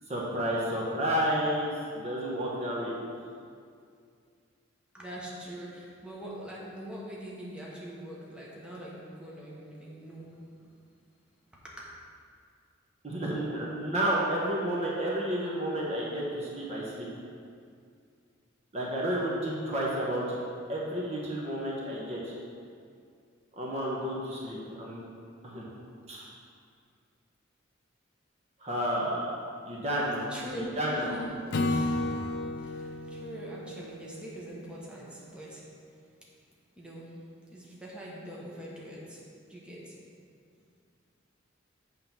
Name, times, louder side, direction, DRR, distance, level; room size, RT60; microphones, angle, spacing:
voice 1, 0.1-2.9 13.0-17.1 18.7-20.4 20.7-22.3 23.6-25.0 25.4-25.7 26.1-26.2 28.6-29.3 29.7-30.3 30.5-31.2, equal, 35° right, -4 dB, 1.0 m, -31 dB
voice 2, 4.9-10.8 11.5-11.9 30.0-32.2 32.6-35.6 36.8-37.1 37.5-39.2 39.5-40.0, equal, 5° right, -6 dB, 1.1 m, -42 dB
Acoustic guitar / Strum, 31.5-34.8, left 2 dB, 60° left, 0.4 m, -33 dB
7.6 x 3.8 x 5.8 m, 2.3 s
head